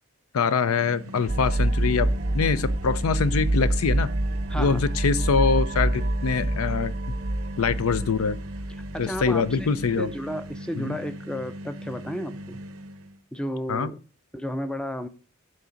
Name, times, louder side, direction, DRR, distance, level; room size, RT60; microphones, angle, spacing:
voice 1, 0.3-2.1 2.3-4.1 4.6-6.9 7.6-8.4 9.0-10.1 10.8-11.0 13.7-13.9, left 5 dB, 85° left, 0.5 m, -24 dB
sound 1, 0.6-13.2, equal, 85° right, 0.7 m, -40 dB
sound 2, 1.3-9.9, right 1 dB, 40° right, 0.6 m, -27 dB
voice 2, 4.5-4.8 8.9-9.7 10.0-12.6 13.3-14.0 14.3-15.1, equal, 5° left, 0.4 m, -32 dB
9.7 x 3.9 x 5.1 m
head